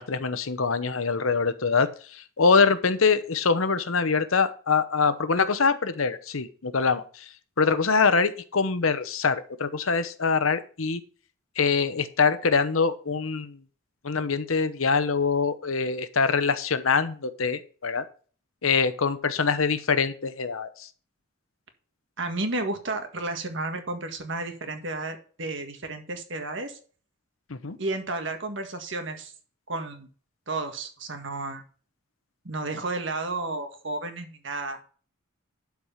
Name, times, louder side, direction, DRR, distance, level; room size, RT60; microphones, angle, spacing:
voice 1, 0.0-7.3 7.6-11.0 11.6-13.6 14.0-18.0 18.6-20.9 27.5-27.8, left 5 dB, 85° left, 12 dB, 0.9 m, -24 dB
voice 2, 22.2-26.8 27.8-29.3 29.7-30.1 30.5-31.6 32.4-34.8, right 2 dB, 60° right, 6 dB, 1.8 m, -32 dB
12.0 x 4.8 x 5.7 m, 0.41 s
head